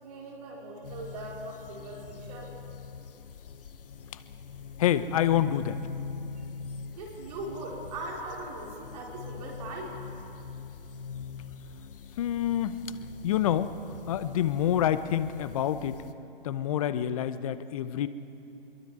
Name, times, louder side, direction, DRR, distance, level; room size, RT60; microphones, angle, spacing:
voice 1, 0.0-2.6 6.9-10.0, right 2 dB, 40° right, -2 dB, 4.4 m, -40 dB
sound 1, 0.8-16.1, left 5 dB, 65° left, 1.0 m, -43 dB
voice 2, 4.8-5.8 12.2-12.8 13.2-13.7 14.1-16.0 16.4-18.1, left 11 dB, 35° left, 13 dB, 0.8 m, -27 dB
24.5 x 22.0 x 4.9 m, 2.7 s
hypercardioid pair, 145°, 30 cm